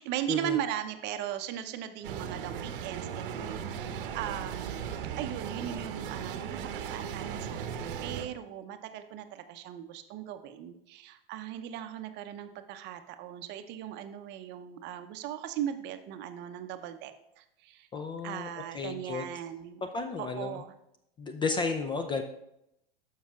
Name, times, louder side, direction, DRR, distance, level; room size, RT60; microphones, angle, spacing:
voice 1, 0.0-17.1 17.4-17.9 18.2-19.8 20.2-20.7, right 10 dB, 35° right, 9 dB, 0.7 m, -38 dB
sound 1, 2.0-8.3, right 8 dB, 60° right, 0.8 m, -37 dB
voice 2, 17.9-19.3 19.9-20.6 21.2-22.2, left 4 dB, 15° left, 7 dB, 0.4 m, -33 dB
12.0 x 5.5 x 2.4 m, 0.81 s
hypercardioid pair, 95°, 30 cm